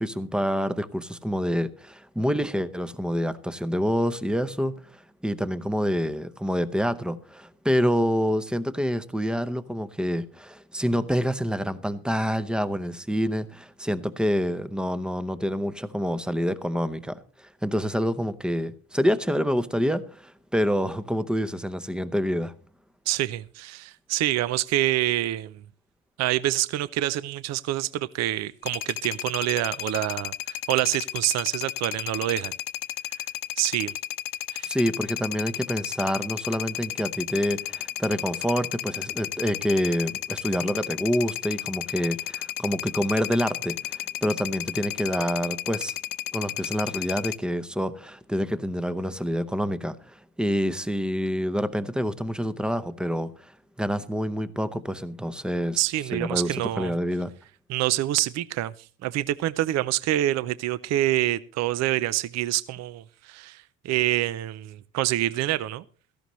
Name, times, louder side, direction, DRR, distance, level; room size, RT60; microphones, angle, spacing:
voice 1, 0.0-22.5 34.6-46.0 46.3-53.5 53.8-55.8 56.1-57.3, equal, 5° right, 0.7 m, -27 dB
voice 2, 23.1-25.6 26.2-32.5 33.2-33.3 33.6-33.9 34.5-34.7 55.8-56.9 57.7-58.7 59.0-65.8, right 15 dB, 55° right, 0.6 m, -26 dB
sound 1, 28.6-47.4, left 13 dB, 80° left, 0.9 m, -33 dB
17.0 x 14.5 x 3.1 m
cardioid pair, 140°, 32 cm